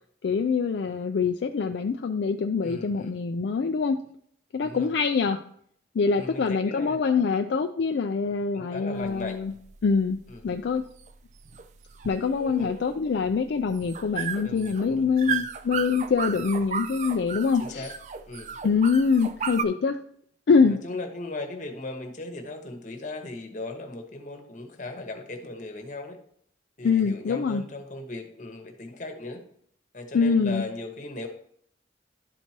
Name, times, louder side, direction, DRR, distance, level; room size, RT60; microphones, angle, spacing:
voice 1, 0.2-4.0 4.5-5.4 5.9-9.5 9.8-10.2 10.4-10.8 12.0-17.9 18.6-20.0 20.5-20.8 26.8-27.6 30.1-30.6, left 5 dB, 70° left, 6 dB, 0.4 m, -24 dB
voice 2, 2.6-3.1 4.6-4.9 6.1-7.4 8.5-9.4 10.3-10.4 12.6-12.7 14.4-15.5 15.7-15.9 17.6-17.9 18.3-18.6 20.6-26.2 26.8-29.4 29.9-31.3, left 2 dB, 45° left, 5 dB, 1.1 m, -38 dB
sound 1, 9.0-19.6, right 7 dB, 40° right, 0.3 m, -35 dB
11.5 x 4.5 x 2.9 m, 0.65 s
head